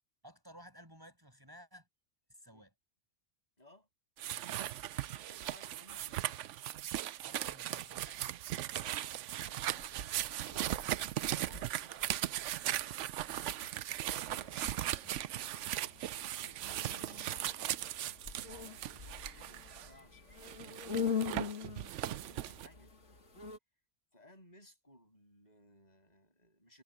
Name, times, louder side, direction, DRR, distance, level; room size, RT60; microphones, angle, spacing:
voice 1, 0.2-1.9 2.3-2.7 7.2-8.2 15.0-15.2, equal, 20° right, 6.4 m, -56 dB
voice 2, 3.6-3.9 5.0-6.4 8.4-11.0 11.4-12.3 12.6-13.1 14.6-17.4 18.4-22.9 24.1-26.8, left 1 dB, 35° left, 8.2 m, -62 dB
sound 1, 4.2-19.9 20.4-22.7, right 13 dB, 80° right, 0.9 m, -38 dB
sound 2, 9.7-23.6, left 7 dB, 75° left, 2.8 m, -44 dB
Bowed string instrument, 15.4-19.4, right 1 dB, 65° right, 7.3 m, -66 dB
omnidirectional pair, 1.2 m